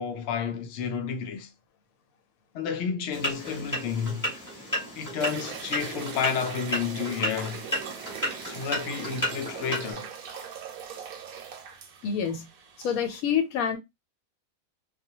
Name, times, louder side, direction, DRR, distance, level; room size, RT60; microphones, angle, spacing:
voice 1, 0.0-1.5 2.5-4.3 4.9-7.7 8.4-10.1, left 7 dB, 65° left, 0.7 m, -31 dB
sound 1, 3.1-9.9, equal, 15° left, 1.0 m, -33 dB
sound 2, 5.2-13.2, right 7 dB, 85° right, 1.0 m, -41 dB
voice 2, 12.0-12.5 12.8-13.8, left 7 dB, 85° left, 1.1 m, -27 dB
2.4 x 2.1 x 2.8 m
omnidirectional pair, 1.5 m